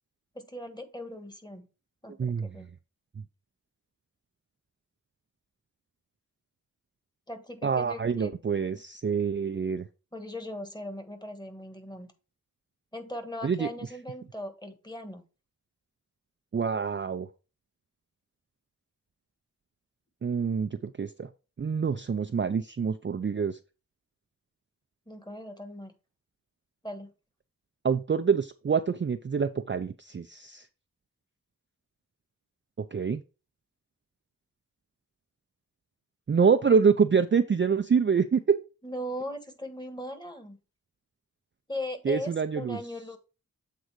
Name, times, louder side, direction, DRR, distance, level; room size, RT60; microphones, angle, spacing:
voice 1, 0.3-1.7 2.0-2.7 7.3-8.3 10.1-12.1 12.9-15.2 25.1-25.9 26.8-27.1 38.8-40.6 41.7-43.2, left 1 dB, 10° left, 7 dB, 1.4 m, -39 dB
voice 2, 2.2-2.6 7.6-9.8 13.4-13.7 16.5-17.3 20.2-21.3 21.6-23.6 27.8-30.7 32.8-33.2 36.3-38.6 42.1-42.8, right 6 dB, 35° right, 8 dB, 0.4 m, -26 dB
8.0 x 3.8 x 4.7 m, 0.32 s
wide cardioid pair, 75°, 34 cm